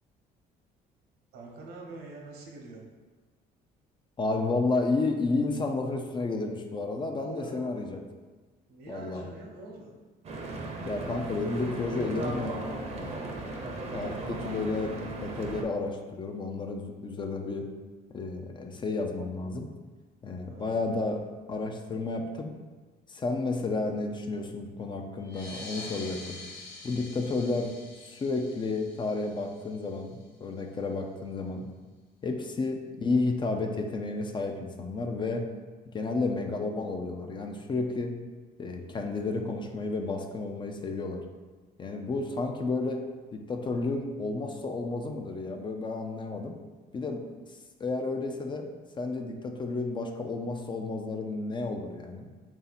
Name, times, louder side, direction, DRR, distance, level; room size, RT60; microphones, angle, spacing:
voice 1, 1.3-2.8 7.0-7.9 8.7-9.9 13.9-14.3 20.5-20.8 32.6-32.7 36.1-36.4, right 2 dB, 75° right, -1 dB, 0.9 m, -46 dB
voice 2, 4.2-8.0 8.9-9.3 10.8-12.6 12.9-13.3 13.9-14.9 15.2-17.7 18.1-19.7 20.2-21.2 21.5-22.5 23.1-26.4 26.8-27.7 28.0-31.7 32.2-35.5 35.9-38.1 38.6-41.2 41.8-43.0 43.3-46.5 46.9-47.2 47.8-48.7 49.0-52.3, left 3 dB, 30° left, 4 dB, 0.4 m, -31 dB
Stream / Boat Water vehicle, 10.2-15.6, right 2 dB, 40° right, 0.6 m, -36 dB
sound 1, 25.2-30.3, left 3 dB, 65° left, 1.1 m, -46 dB
3.5 x 2.7 x 4.0 m, 1.3 s
cardioid pair, 110°, 17 cm